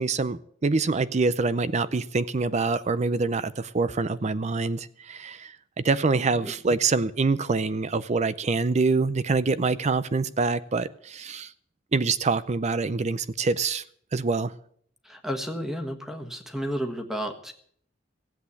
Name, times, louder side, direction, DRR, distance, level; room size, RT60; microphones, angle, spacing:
voice 1, 0.0-11.5 11.9-13.8 14.1-14.5, right 4 dB, 35° right, 0.5 m, -25 dB
voice 2, 15.0-17.5, equal, ahead, 1.5 m, -32 dB
15.5 x 8.4 x 8.4 m
head